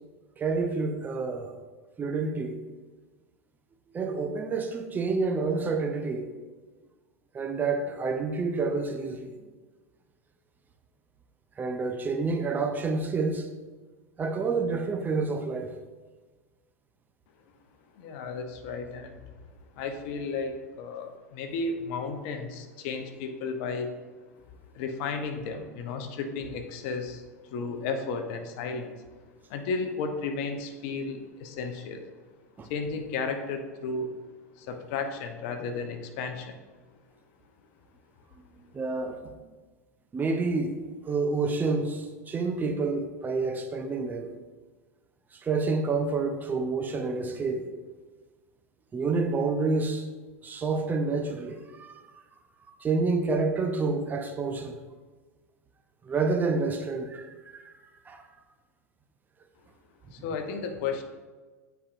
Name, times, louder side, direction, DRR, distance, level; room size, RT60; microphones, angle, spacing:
voice 1, 0.4-1.5 2.0-2.6 3.9-6.3 7.3-9.3 11.6-13.5 14.2-15.7 32.6-32.7 38.7-39.1 40.1-40.8 41.0-44.3 45.4-47.7 48.9-50.0 50.4-52.0 52.8-54.7 56.0-57.8 58.1-58.2, right 4 dB, 20° right, 5 dB, 0.6 m, -28 dB
voice 2, 17.9-19.2 19.7-23.9 24.7-29.0 29.5-32.1 32.6-34.1 34.6-36.6 60.1-61.0, left 4 dB, 55° left, 6 dB, 0.8 m, -33 dB
9.7 x 4.6 x 2.6 m, 1.4 s
figure-of-eight pair, 85°, 8 cm